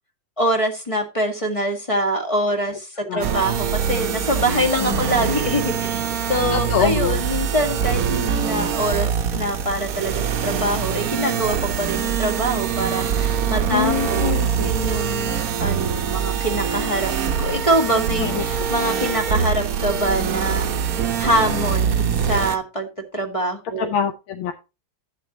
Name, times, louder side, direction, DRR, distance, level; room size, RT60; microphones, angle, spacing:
voice 1, 0.4-6.0 6.3-17.1 17.4-23.9, right 1 dB, 15° left, 3 dB, 1.6 m, -24 dB
sound 1, 3.2-22.6, right 7 dB, 50° right, 1.3 m, -24 dB
voice 2, 6.5-7.2 13.7-14.7 18.2-18.4 23.8-24.5, left 9 dB, 85° left, 7 dB, 1.6 m, -24 dB
11.5 x 8.9 x 2.9 m, 0.27 s
omnidirectional pair, 2.2 m